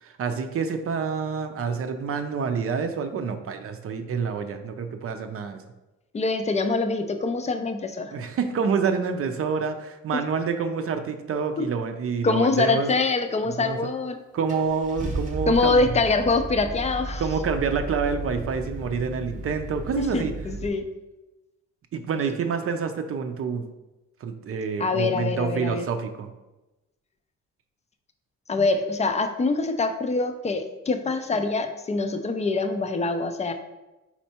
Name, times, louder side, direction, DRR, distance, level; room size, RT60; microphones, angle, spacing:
voice 1, 0.0-5.6 8.1-12.9 13.6-13.9 14.3-15.9 17.2-20.3 21.9-23.7 24.2-26.3, right 5 dB, 50° right, 7 dB, 0.5 m, -27 dB
voice 2, 6.1-8.2 11.6-11.7 12.2-14.2 15.5-17.2 20.0-20.8 24.8-25.9 28.5-33.5, left 3 dB, 20° left, 8 dB, 0.4 m, -24 dB
Car / Engine starting, 13.8-13.9 14.5-20.7, right 1 dB, 25° right, 1.0 m, -34 dB
4.4 x 4.2 x 2.8 m, 1.0 s
cardioid pair, 90°, 30 cm